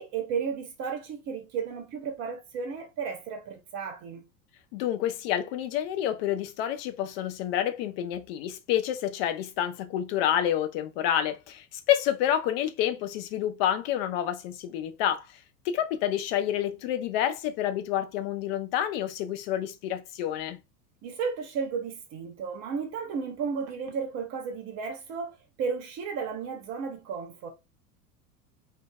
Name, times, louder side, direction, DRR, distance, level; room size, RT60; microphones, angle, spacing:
voice 1, 0.0-4.2 21.0-27.5, right 6 dB, 35° right, 0.8 m, -33 dB
voice 2, 4.7-15.4 15.6-20.6, left 11 dB, 40° left, 0.4 m, -28 dB
2.5 x 2.3 x 2.3 m
figure-of-eight pair, 80°, 47 cm